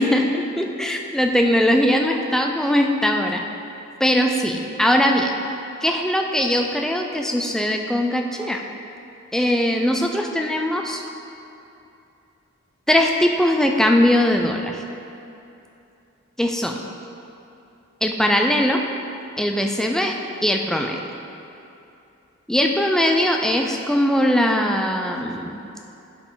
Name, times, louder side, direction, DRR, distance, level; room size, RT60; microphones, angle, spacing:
voice 1, 0.0-3.4 4.0-5.3 5.8-8.6 9.3-11.0 12.9-14.8 16.4-16.8 18.0-18.8 19.4-21.0 22.5-25.6, left 1 dB, ahead, 2 dB, 0.3 m, -20 dB
11.0 x 4.8 x 3.8 m, 2.8 s
head